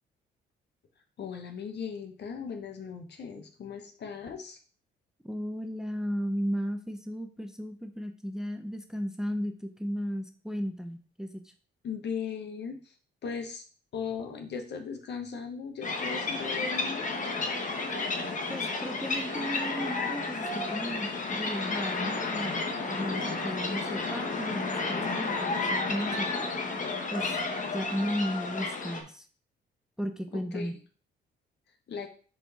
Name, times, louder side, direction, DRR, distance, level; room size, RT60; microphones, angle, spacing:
voice 1, 1.2-4.6 11.8-12.9 13.2-13.6 13.9-17.1 23.7-24.1 30.5-30.8 31.9-32.1, left 6 dB, 60° left, 5 dB, 1.4 m, -38 dB
voice 2, 5.2-11.5 18.5-26.5 27.1-27.4 27.7-29.3 30.0-30.8, equal, 5° right, 6 dB, 0.7 m, -35 dB
sound 1, 15.8-29.0, left 3 dB, 40° left, 1.5 m, -32 dB
4.6 x 4.1 x 5.7 m, 0.41 s
cardioid pair, 90°, 20 cm